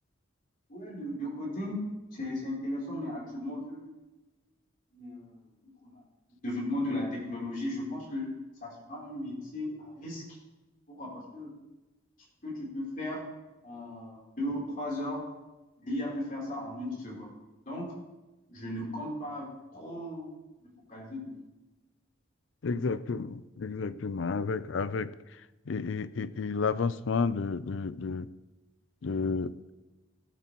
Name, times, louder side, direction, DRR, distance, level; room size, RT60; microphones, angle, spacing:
voice 1, 0.7-1.8 2.1-3.9 4.9-6.0 6.4-10.2 10.9-11.5 12.4-13.3 13.6-15.2 15.8-17.3 17.7-17.9 18.5-20.3 20.6-21.3 23.9-24.0, left 1 dB, 45° left, -3 dB, 3.6 m, -36 dB
voice 2, 22.6-25.1 25.7-28.3 29.0-29.6, left 4 dB, 70° left, 15 dB, 0.5 m, -31 dB
16.5 x 9.0 x 3.1 m, 1.1 s
head